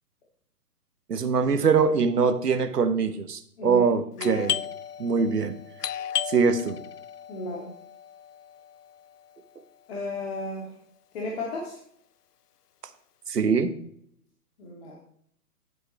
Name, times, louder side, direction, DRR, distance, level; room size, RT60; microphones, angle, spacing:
voice 1, 1.1-4.6 5.0-5.6 6.3-6.8 13.3-13.7, right 5 dB, 75° right, 10 dB, 1.4 m, -23 dB
Doorbell, 4.2-9.6, left 10 dB, 75° left, 0.6 m, -35 dB
voice 2, 7.3-7.7 9.9-10.7 11.1-11.8 14.6-15.0, left 2 dB, 40° left, -3 dB, 2.6 m, -34 dB
12.5 x 7.8 x 3.3 m, 0.66 s
figure-of-eight pair, 140°, 48 cm